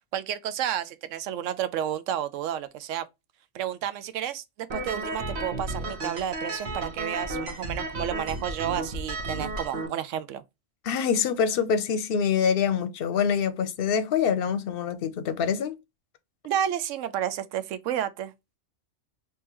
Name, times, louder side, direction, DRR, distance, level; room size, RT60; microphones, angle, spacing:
voice 1, 0.1-3.0 3.5-10.4 16.4-18.3, right 10 dB, 90° right, 0.9 m, -31 dB
sound 1, 4.7-9.9, right 2 dB, 60° right, 1.2 m, -33 dB
voice 2, 10.8-15.8, left 7 dB, 60° left, 0.8 m, -25 dB
3.6 x 2.8 x 2.9 m
omnidirectional pair, 1.2 m